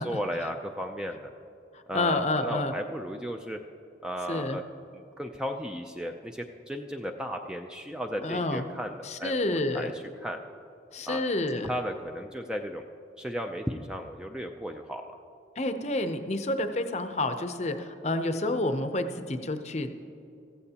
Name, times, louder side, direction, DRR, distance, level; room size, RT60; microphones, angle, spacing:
voice 1, 0.0-1.3 1.9-3.6 4.0-4.6 4.9-10.4 11.1-11.2 11.6-12.8 13.2-15.1, equal, 5° right, 4 dB, 0.4 m, -35 dB
voice 2, 1.7-2.7 4.3-4.6 8.2-8.6 9.0-9.9 10.9-11.7 15.6-19.9, left 2 dB, 35° left, 8 dB, 0.6 m, -29 dB
15.0 x 15.0 x 2.9 m, 2.6 s
head